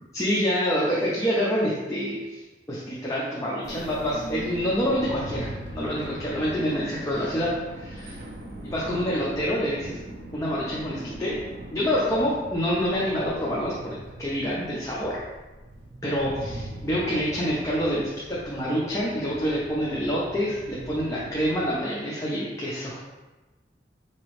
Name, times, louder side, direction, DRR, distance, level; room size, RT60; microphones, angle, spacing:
voice 1, 0.1-2.4 2.7-8.2 8.6-10.0 10.3-11.4 11.7-15.2 16.0-23.0, equal, 15° left, -7 dB, 0.6 m, -27 dB
sound 1, 3.6-21.7, right 1 dB, 80° right, 0.8 m, -40 dB
5.0 x 2.9 x 3.1 m, 1.2 s
head